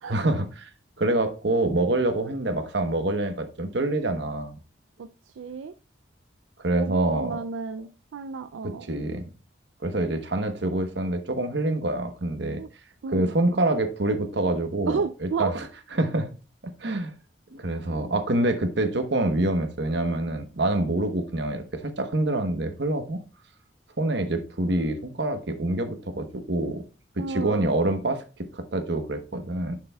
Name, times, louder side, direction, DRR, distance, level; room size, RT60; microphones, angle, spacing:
voice 1, 0.1-0.7 1.0-4.6 6.6-7.4 8.6-9.2 9.8-12.6 13.1-15.7 15.9-16.3 16.6-17.1 17.5-23.2 24.0-26.8 27.3-28.2 28.5-29.8, right 2 dB, 65° right, 8 dB, 1.0 m, -26 dB
voice 2, 5.0-5.7 6.7-8.9 12.6-12.7 13.0-13.3 14.9-15.5 27.2-27.7, right 5 dB, 80° right, 10 dB, 0.4 m, -32 dB
10.0 x 6.6 x 2.3 m, 0.33 s
head